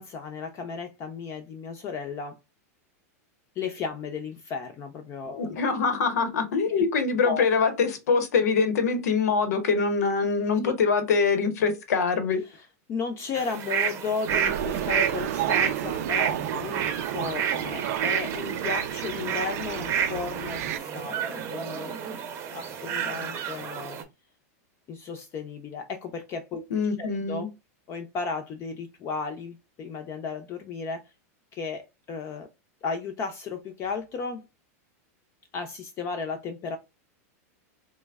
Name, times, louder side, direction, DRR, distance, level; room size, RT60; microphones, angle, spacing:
voice 1, 0.0-2.4 3.6-5.5 6.7-6.8 7.2-7.5 10.6-10.8 12.9-21.9 22.5-24.0 24.9-26.6 27.0-27.5 27.9-31.0 31.5-32.5 32.8-34.4 35.5-36.8, left 5 dB, 30° left, 0.5 m, -34 dB
voice 2, 5.4-12.4 26.7-27.5, left 5 dB, 80° left, 0.9 m, -24 dB
sound 1, 13.3-24.0, right 8 dB, 30° right, 0.7 m, -30 dB
sound 2, 14.3-20.8, right 11 dB, 70° right, 0.4 m, -32 dB
3.0 x 2.1 x 3.4 m
supercardioid pair, 140°, 8 cm